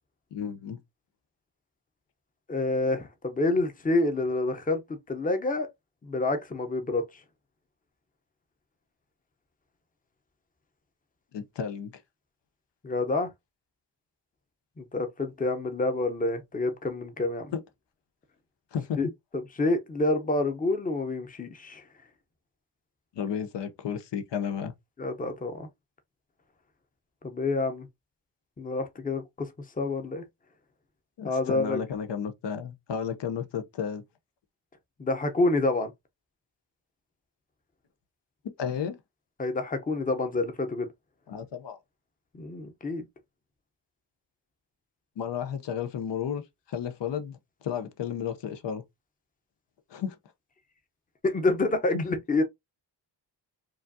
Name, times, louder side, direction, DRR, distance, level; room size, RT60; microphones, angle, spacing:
voice 1, 0.3-0.8 11.3-11.9 17.5-17.6 18.7-19.0 23.1-24.7 31.2-34.0 38.6-39.0 41.3-41.8 45.2-46.4 46.7-48.8 49.9-50.2 51.9-52.0, left 7 dB, 75° left, 0.8 m, -32 dB
voice 2, 2.5-4.8 5.1-5.7 6.0-7.0 12.8-13.3 14.8-17.5 19.0-19.1 19.3-21.8 25.0-25.7 27.2-27.9 28.6-29.5 29.8-30.2 31.2-31.8 35.0-35.9 39.4-40.9 42.3-43.0 51.2-52.4, left 2 dB, 20° left, 0.7 m, -28 dB
4.9 x 2.5 x 2.6 m
wide cardioid pair, 125°, 43 cm